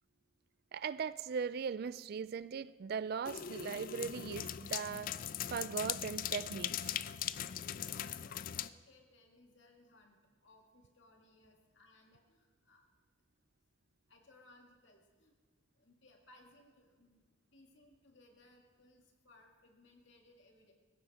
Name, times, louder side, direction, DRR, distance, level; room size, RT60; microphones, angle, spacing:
voice 1, 0.7-5.2 5.5-6.7, right 6 dB, 50° right, 0.3 m, -39 dB
sound 1, 3.2-8.7, left 10 dB, 45° left, 0.3 m, -40 dB
voice 2, 7.6-10.2 10.4-12.9 14.1-15.3 15.8-20.7, left 2 dB, 65° left, 2.2 m, -64 dB
18.0 x 15.5 x 3.6 m
head